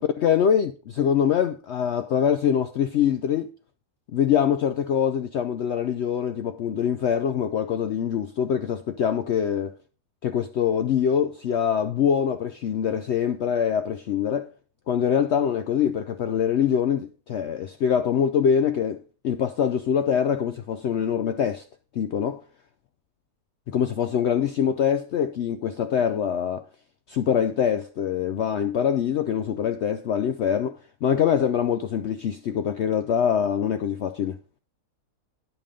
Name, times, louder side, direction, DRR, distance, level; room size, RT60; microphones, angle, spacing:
voice 1, 0.2-3.5 4.1-9.7 10.2-14.5 14.9-21.6 21.9-22.4 23.7-26.6 27.1-34.4, left 8 dB, 80° left, 0.6 m, -24 dB
9.1 x 5.6 x 4.9 m
omnidirectional pair, 1.7 m